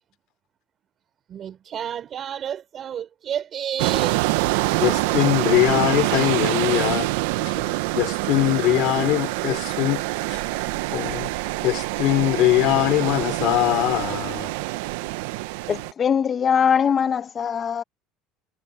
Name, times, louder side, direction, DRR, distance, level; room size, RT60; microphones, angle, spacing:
voice 1, 1.3-4.3, right 9 dB, 40° right, 4.1 m, -31 dB
sound 1, 3.8-15.9, right 20 dB, 85° right, 0.8 m, -25 dB
voice 2, 4.8-7.1 7.4-10.0 10.3-10.4 10.9-11.3 11.6-14.5, left 17 dB, 65° left, 3.1 m, -22 dB
voice 3, 15.7-17.8, left 7 dB, 30° left, 1.3 m, -21 dB
supercardioid pair, 115°, 0 cm